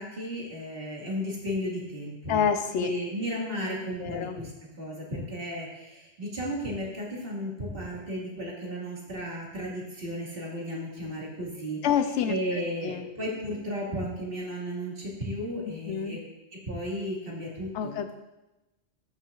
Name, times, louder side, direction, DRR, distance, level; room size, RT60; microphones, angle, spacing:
voice 1, 0.0-2.5 2.8-4.5 4.8-11.8 12.3-16.2 16.7-18.0, equal, 55° right, -4 dB, 2.0 m, -34 dB
voice 2, 2.3-2.9 4.0-4.3 11.8-12.3 12.8-13.0 15.9-16.2 17.7-18.1, left 8 dB, 85° left, 9 dB, 0.9 m, -27 dB
13.0 x 5.7 x 2.4 m, 0.99 s
omnidirectional pair, 1.2 m